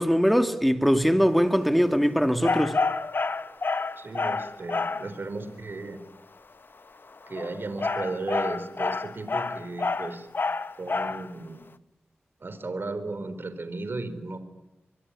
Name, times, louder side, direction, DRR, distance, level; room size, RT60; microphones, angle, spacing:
voice 1, 0.0-2.8, equal, ahead, 2.5 m, -21 dB
sound 1, 2.4-5.1 7.2-11.3, left 4 dB, 50° left, 1.1 m, -28 dB
voice 2, 4.0-6.0 7.3-10.3 10.8-11.6 12.4-14.4, right 3 dB, 55° right, 4.1 m, -35 dB
24.5 x 24.0 x 10.0 m
cardioid pair, 60°, 4 cm